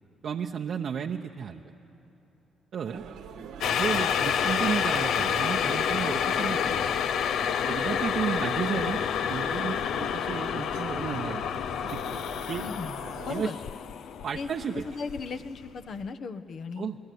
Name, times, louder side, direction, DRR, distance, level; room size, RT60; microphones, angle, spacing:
voice 1, 0.2-1.7 2.7-3.0 3.8-6.8 7.7-11.5 11.9-12.0 12.5-12.6 13.3-13.6 14.2-14.9 16.8-17.0, right 7 dB, 60° right, 3 dB, 0.8 m, -33 dB
sound 1, 2.9-13.4, right 7 dB, 85° right, 1.6 m, -44 dB
sound 2, 3.6-15.7 16.0-16.1, left 8 dB, 75° left, 0.6 m, -29 dB
voice 2, 12.6-12.9 13.2-13.6 14.3-14.5 14.8-16.9, left 4 dB, 60° left, 9 dB, 1.1 m, -36 dB
28.0 x 20.0 x 9.4 m, 2.9 s
cardioid pair, 90°, 0 cm